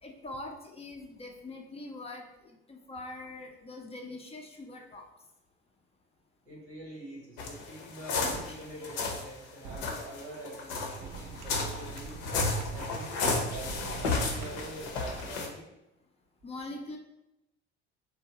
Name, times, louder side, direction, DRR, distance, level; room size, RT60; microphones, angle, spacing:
voice 1, 0.0-5.1 8.5-8.6 16.4-17.0, left 2 dB, 20° left, 1 dB, 0.4 m, -43 dB
voice 2, 6.4-12.2 12.7-15.6, right 1 dB, 85° right, -4 dB, 1.0 m, -45 dB
sound 1, 7.4-9.3 9.7-15.5, left 3 dB, 75° left, 0.6 m, -33 dB
sound 2, 8.3-8.4 9.6-9.8 11.0-12.8 13.5-15.3, right 5 dB, 55° right, 0.4 m, -44 dB
2.8 x 2.0 x 2.7 m, 0.89 s
hypercardioid pair, 55°, 33 cm